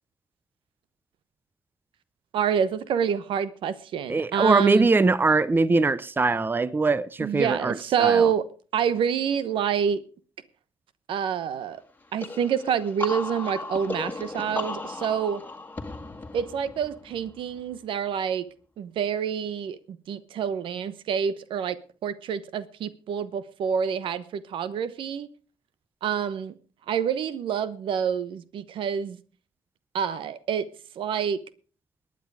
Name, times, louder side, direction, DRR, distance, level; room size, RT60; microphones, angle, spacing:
voice 1, 2.3-4.9 7.2-8.5 8.7-10.0 11.1-11.8 12.1-15.4 16.3-18.5 18.8-25.3 26.0-26.5 26.9-29.2 29.9-30.7 31.0-31.4, right 7 dB, 75° right, 1.0 m, -27 dB
voice 2, 4.1-8.3, right 3 dB, 25° right, 0.7 m, -22 dB
sound 1, 12.2-17.8, left 2 dB, 20° left, 1.9 m, -36 dB
19.5 x 9.5 x 4.9 m
supercardioid pair, 65°, 9 cm